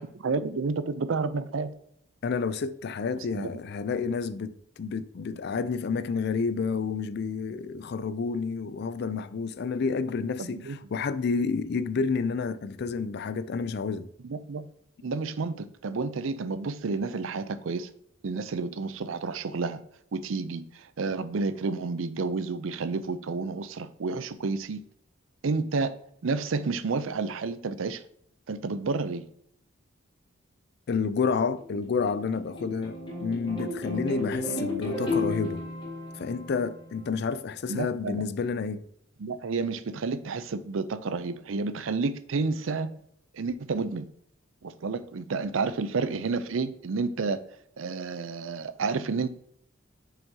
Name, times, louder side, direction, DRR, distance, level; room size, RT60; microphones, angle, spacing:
voice 1, 0.0-1.7 3.2-3.6 10.4-10.8 14.3-14.7 15.0-17.9 18.2-19.8 20.1-24.8 25.4-25.9 26.2-28.0 28.5-29.2 37.7-38.2 39.2-42.9 43.3-44.1 44.6-47.4 47.8-49.3, right 4 dB, 70° right, 0.5 m, -30 dB
voice 2, 2.2-14.1 30.9-35.6 36.1-38.8, left 5 dB, 55° left, 0.4 m, -30 dB
sound 1, 31.6-37.2, left 2 dB, 25° left, 1.9 m, -34 dB
6.9 x 5.8 x 2.8 m
head